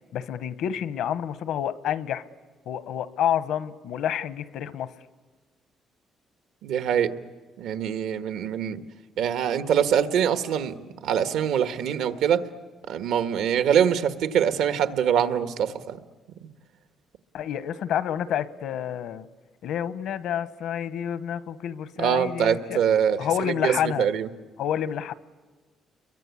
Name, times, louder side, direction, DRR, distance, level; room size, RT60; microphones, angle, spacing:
voice 1, 0.1-2.2 2.7-4.9 17.3-19.3 19.6-22.8 23.2-24.1 24.6-25.1, left 9 dB, 80° left, 14 dB, 1.0 m, -29 dB
voice 2, 6.6-7.1 7.6-8.8 9.2-12.4 12.9-16.0 22.0-24.3, right 8 dB, 90° right, 10 dB, 1.4 m, -24 dB
30.0 x 23.0 x 8.5 m, 1.3 s
cardioid pair, 140°, 0 cm